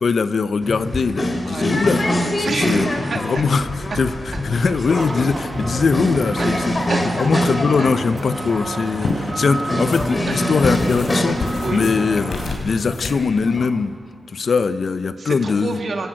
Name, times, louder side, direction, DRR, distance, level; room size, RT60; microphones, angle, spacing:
voice 1, 0.0-2.0 2.4-2.9 3.2-3.7 4.0-6.7 7.2-11.4 11.7-13.9 14.3-15.8, left 5 dB, 60° left, 11 dB, 0.9 m, -21 dB
sound 1, 0.6-13.7, left 1 dB, 35° left, 3.3 m, -25 dB
voice 2, 2.4-3.2 4.3-4.4 6.4-7.2 7.8-7.9 10.3-10.6 11.6-11.9 15.2-16.1, right 3 dB, 60° right, 2 dB, 2.9 m, -28 dB
sound 2, 4.5-12.6, right 2 dB, 35° right, 2.0 m, -31 dB
sound 3, 8.0-13.1, left 4 dB, 85° left, 3.6 m, -29 dB
26.0 x 14.0 x 8.9 m, 2.5 s
cardioid pair, 70°, 0 cm